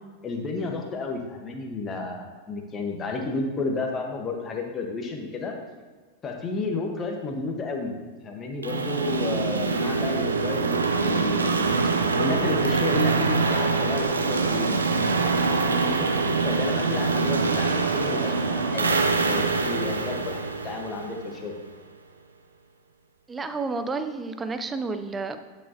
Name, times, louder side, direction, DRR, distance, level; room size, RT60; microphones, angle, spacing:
voice 1, 0.2-5.6 6.2-7.9 8.2-11.7 12.1-21.6, left 3 dB, 25° left, 2 dB, 1.2 m, -32 dB
sound 1, 8.6-21.5, right 4 dB, 75° right, 0.6 m, -24 dB
voice 2, 23.3-25.4, right 3 dB, 15° right, 9 dB, 0.5 m, -30 dB
9.9 x 7.2 x 2.8 m, 1.3 s
figure-of-eight pair, 90°, 0 cm